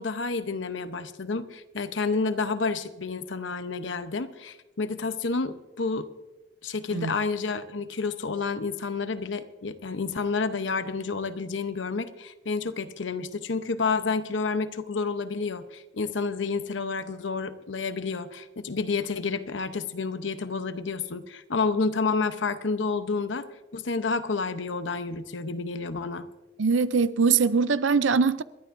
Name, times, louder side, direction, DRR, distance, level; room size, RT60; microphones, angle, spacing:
voice 1, 0.0-6.1 6.6-23.4 23.7-26.3, left 4 dB, 75° left, 0.8 m, -30 dB
voice 2, 26.6-28.4, right 5 dB, 75° right, 0.5 m, -22 dB
28.0 x 12.0 x 2.6 m
head